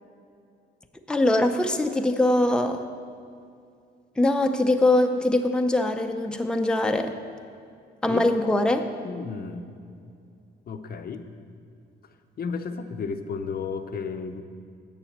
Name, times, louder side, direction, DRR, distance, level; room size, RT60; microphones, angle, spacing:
voice 1, 1.1-2.8 4.2-7.1 8.0-8.9, left 1 dB, 5° left, 5 dB, 0.6 m, -22 dB
voice 2, 9.0-9.7 10.7-11.3 12.4-14.4, left 5 dB, 50° left, 8 dB, 0.7 m, -33 dB
8.2 x 7.1 x 7.3 m, 2.4 s
cardioid pair, 90°, 20 cm